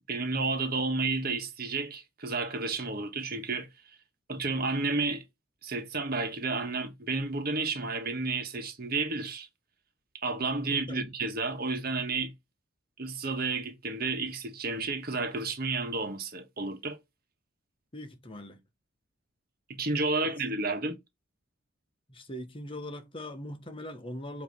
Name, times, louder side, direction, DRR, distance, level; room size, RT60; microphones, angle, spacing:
voice 1, 0.1-3.7 4.3-5.2 5.6-9.5 10.1-12.3 13.0-17.0 19.7-21.0, right 3 dB, 50° right, 1.3 m, -31 dB
voice 2, 10.7-11.1 17.9-18.6 20.2-20.3 22.1-24.4, left 1 dB, 25° left, 1.1 m, -41 dB
8.2 x 3.1 x 5.2 m
head